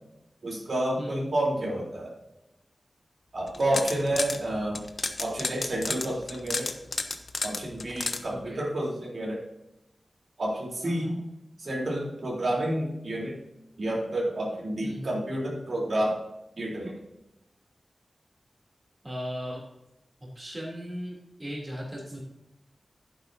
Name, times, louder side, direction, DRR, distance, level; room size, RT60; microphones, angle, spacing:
voice 1, 0.4-2.1 3.3-4.8 5.2-6.7 7.4-9.4 10.4-11.2 11.6-13.4 13.8-16.2 16.6-16.9, right 1 dB, 65° right, -4 dB, 3.7 m, -29 dB
voice 2, 1.0-1.3 8.3-8.6 10.8-11.2 14.8-15.1 19.0-19.6 20.3-22.2, equal, 20° right, -3 dB, 3.2 m, -37 dB
sound 1, 3.5-4.4 4.8-8.2, left 3 dB, 60° left, 0.9 m, -31 dB
11.5 x 9.6 x 2.8 m, 0.89 s
wide cardioid pair, 110°, 0 cm